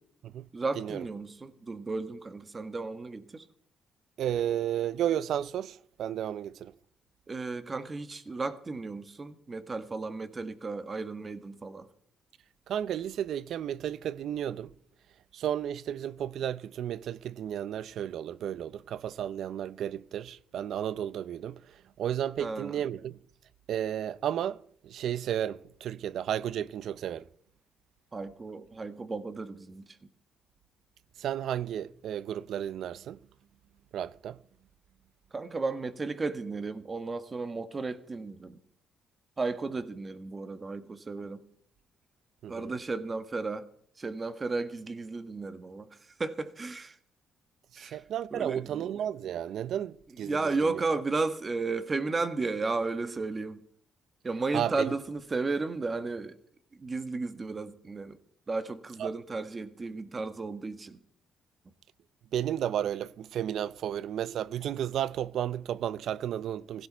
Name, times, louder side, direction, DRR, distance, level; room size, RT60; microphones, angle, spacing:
voice 1, 0.5-3.4 7.3-11.9 22.4-22.8 28.1-30.0 35.3-38.6 39.4-41.4 42.5-43.6 44.0-47.0 47.8-48.0 48.3-48.8 50.2-53.6 54.2-56.4 56.7-58.2 58.5-61.0, right 3 dB, 30° right, 1.5 m, -34 dB
voice 2, 4.2-6.7 12.7-14.7 15.3-23.2 23.7-27.3 31.2-33.2 33.9-34.4 42.4-42.7 47.7-50.4 50.7-50.8 54.5-54.9 59.0-59.1 62.3-66.9, right 10 dB, 70° right, 0.6 m, -33 dB
16.5 x 16.5 x 4.6 m
cardioid pair, 90°, 0 cm